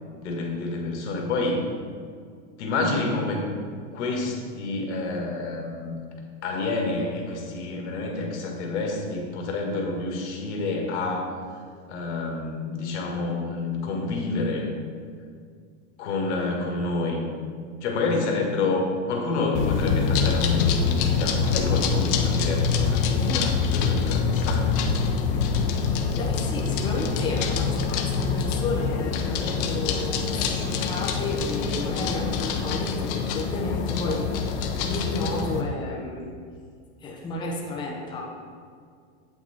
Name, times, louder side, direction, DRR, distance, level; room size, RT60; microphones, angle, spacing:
voice 1, 0.2-1.6 2.6-3.5 3.9-5.9 6.4-11.3 11.9-14.7 16.0-17.3 17.8-24.7 25.1-25.2, left 3 dB, 75° left, 1 dB, 1.8 m, -28 dB
sound 1, 19.5-35.6, left 5 dB, 50° left, 0.8 m, -25 dB
voice 2, 23.2-23.5 26.1-34.3 34.8-36.3 37.0-38.3, left 2 dB, 15° left, -3 dB, 0.9 m, -32 dB
8.5 x 5.9 x 4.2 m, 2.1 s
supercardioid pair, 155°, 35 cm